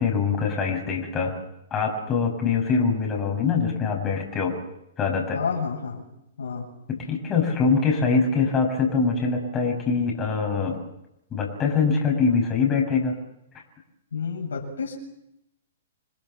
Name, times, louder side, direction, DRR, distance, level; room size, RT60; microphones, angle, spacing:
voice 1, 0.0-1.4 1.7-4.6 5.0-5.4 6.9-10.8 11.3-13.2, left 5 dB, 20° left, 0 dB, 6.9 m, -23 dB
voice 2, 5.3-6.0 6.4-6.6 14.1-15.0, left 5 dB, 75° left, 1 dB, 7.3 m, -29 dB
28.0 x 19.5 x 7.3 m, 0.84 s
hypercardioid pair, 125°, 0 cm